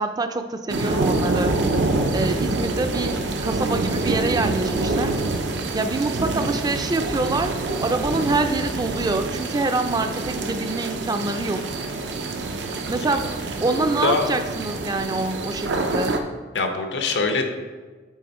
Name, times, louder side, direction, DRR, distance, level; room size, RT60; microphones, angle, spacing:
voice 1, 0.0-1.5 2.1-5.2 5.7-11.6 12.9-13.3 13.6-16.2, right 3 dB, 25° right, 8 dB, 0.3 m, -25 dB
sound 1, 0.7-16.2, right 2 dB, 85° right, 0.6 m, -26 dB
voice 2, 13.7-14.3 16.5-17.5, left 3 dB, 85° left, 5 dB, 0.8 m, -24 dB
8.5 x 3.5 x 4.3 m, 1.4 s
head